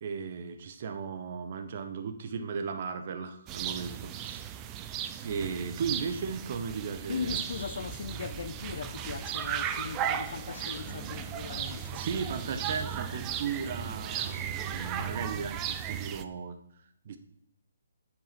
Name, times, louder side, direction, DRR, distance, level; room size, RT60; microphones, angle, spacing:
voice 1, 0.0-4.4 5.2-7.4 11.9-16.6 17.0-17.2, right 6 dB, 45° right, 1.0 m, -36 dB
sound 1, 3.5-16.2, right 9 dB, 20° right, 0.5 m, -36 dB
voice 2, 7.1-12.2 13.1-13.2, left 6 dB, 60° left, 0.3 m, -39 dB
sound 2, 8.7-15.3, left 6 dB, 40° left, 0.9 m, -49 dB
9.0 x 5.9 x 5.9 m
hypercardioid pair, 150°, 0 cm